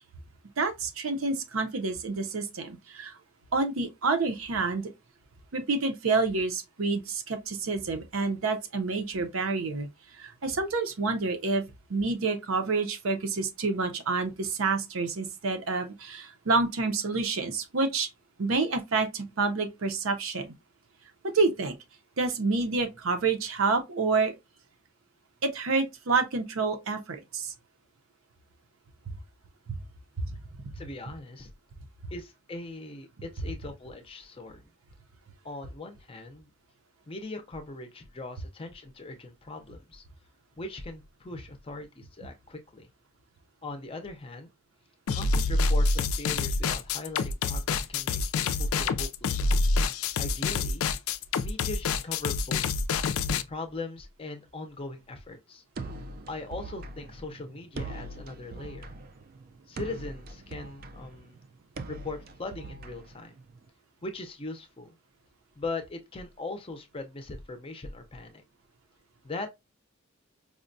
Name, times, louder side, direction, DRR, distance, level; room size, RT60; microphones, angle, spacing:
voice 1, 0.6-3.2 3.5-4.9 5.5-9.9 10.2-11.6 11.9-18.1 18.4-20.5 21.3-21.8 22.2-24.3 25.4-27.5 29.1-29.2 29.7-29.8 30.2-30.4, right 3 dB, 75° right, 0.7 m, -28 dB
voice 2, 30.7-31.5 32.1-34.6 35.4-36.5 37.1-40.0 40.6-42.9 43.6-44.5 45.1-49.5 50.2-50.9 51.4-52.7 53.5-55.6 56.3-58.9 59.7-61.4 61.9-63.3 64.0-64.9 65.6-68.4 69.2-69.5, left 2 dB, 25° left, 0.5 m, -40 dB
sound 1, 45.1-53.4, left 3 dB, 80° left, 0.4 m, -27 dB
sound 2, 55.8-63.7, right 3 dB, 45° right, 0.4 m, -42 dB
4.8 x 2.2 x 2.5 m
head